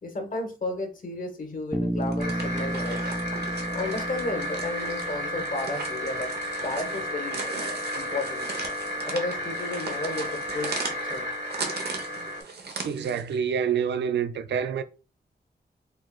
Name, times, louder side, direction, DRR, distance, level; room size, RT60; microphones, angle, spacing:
voice 1, 0.0-3.1 3.7-6.3 6.6-8.5 9.1-10.7 11.1-11.2, left 2 dB, 50° left, 1.2 m, -33 dB
Bass guitar, 1.7-5.8, right 1 dB, 5° right, 0.3 m, -33 dB
sound 1, 2.0-13.4, right 4 dB, 70° right, 0.9 m, -38 dB
sound 2, 2.2-12.4, equal, 45° right, 1.3 m, -33 dB
voice 2, 12.8-14.8, right 7 dB, 90° right, 0.4 m, -27 dB
4.5 x 3.1 x 2.3 m
wide cardioid pair, 80°, 18 cm